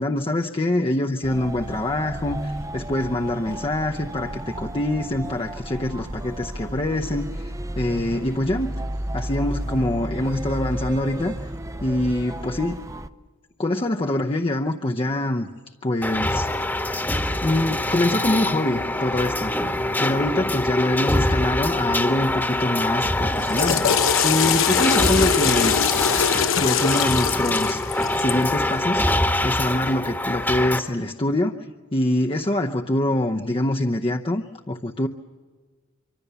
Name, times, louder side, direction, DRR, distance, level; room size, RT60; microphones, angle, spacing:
voice 1, 0.0-8.7 9.1-11.5 11.8-12.8 13.6-15.5 15.8-16.5 17.4-19.5 20.0-25.8 26.3-27.8 28.2-29.0 29.4-31.5 31.9-35.1, left 1 dB, 25° left, 1 dB, 0.7 m, -24 dB
sound 1, 1.2-13.1, right 1 dB, 15° right, 0.6 m, -33 dB
sound 2, 16.0-30.8, left 1 dB, 10° left, 1.2 m, -24 dB
Water / Toilet flush, 23.3-28.5, left 8 dB, 70° left, 0.8 m, -22 dB
24.5 x 24.5 x 6.9 m, 1.5 s
head